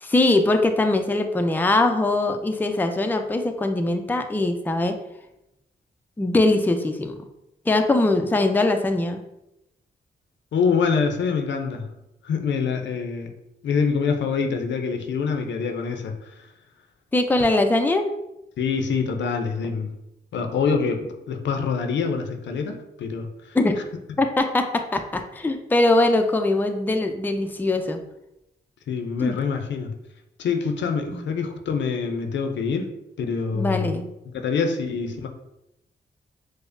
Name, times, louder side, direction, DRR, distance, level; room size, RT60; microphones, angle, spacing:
voice 1, 0.0-5.0 6.2-7.2 7.7-9.2 17.1-18.1 23.5-23.8 24.2-28.0 29.2-29.4 31.1-31.2 33.5-34.1, left 2 dB, 10° left, 6 dB, 0.4 m, -21 dB
voice 2, 10.5-11.9 12.2-13.3 13.6-16.2 18.6-19.9 20.3-23.3 28.9-29.9 30.4-32.9 33.2-33.9 34.3-35.3, left 5 dB, 80° left, 5 dB, 0.5 m, -25 dB
4.9 x 2.0 x 2.5 m, 0.87 s
cardioid pair, 55°, 19 cm